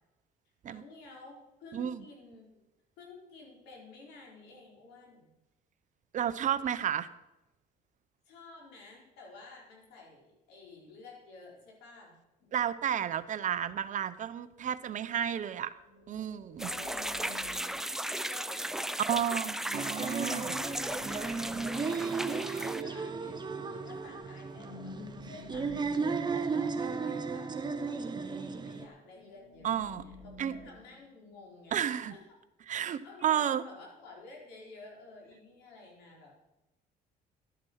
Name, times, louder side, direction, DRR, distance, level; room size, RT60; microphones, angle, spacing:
voice 1, 0.7-2.6 3.0-5.3 8.2-12.2 16.6-19.6 20.4-27.5 27.8-32.4 33.0-36.4, left 3 dB, 90° left, -2 dB, 4.8 m, -52 dB
voice 2, 6.1-7.1 12.5-15.7 16.1-16.7 19.1-20.5 29.6-30.0 30.4-30.5 31.7-32.1 32.7-33.6, right 9 dB, 50° right, 14 dB, 0.7 m, -32 dB
sound 1, 12.4-13.6 15.8-18.8 20.3-23.3 24.0-24.2 24.5-27.5 29.0-31.6 32.0-32.2, left 3 dB, 65° left, 3.6 m, -52 dB
sound 2, 16.6-22.8, right 1 dB, 5° right, 0.4 m, -36 dB
sound 3, 19.7-28.9, right 4 dB, 25° right, 1.0 m, -35 dB
12.0 x 9.5 x 5.7 m, 0.97 s
cardioid pair, 110°, 17 cm